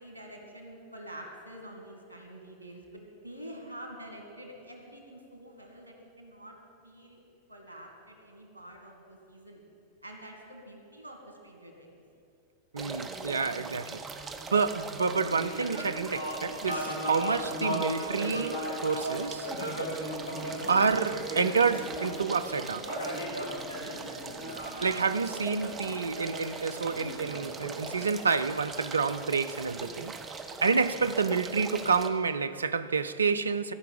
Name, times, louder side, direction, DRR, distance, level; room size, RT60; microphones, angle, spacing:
voice 1, 0.0-6.6 6.8-7.2 7.5-9.7 10.0-12.0 24.7-25.3, right 1 dB, 90° left, 1.9 m, -47 dB
voice 2, 12.7-14.0 14.5-19.5 20.7-22.9 24.8-30.1 30.6-33.7, right 5 dB, 75° right, 0.4 m, -28 dB
sound 1, 12.8-32.1, right 4 dB, 20° right, 0.9 m, -41 dB
sound 2, 15.0-28.7, equal, 70° left, 2.3 m, -37 dB
13.5 x 5.8 x 8.8 m
figure-of-eight pair, 90°, 0 cm